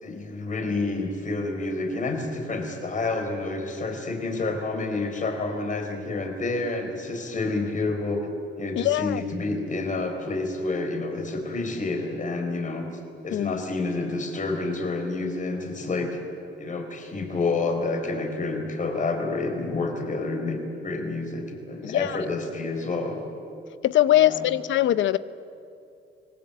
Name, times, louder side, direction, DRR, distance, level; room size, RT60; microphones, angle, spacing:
voice 1, 0.0-8.3 8.6-12.9 13.2-16.2 16.6-23.2 24.1-24.5, left 3 dB, 40° left, 5 dB, 4.2 m, -29 dB
voice 2, 8.8-9.2 13.3-13.5 21.8-22.1 23.8-25.2, left 13 dB, 75° left, 15 dB, 0.8 m, -21 dB
25.0 x 19.5 x 8.6 m, 2.6 s
cardioid pair, 90°, 20 cm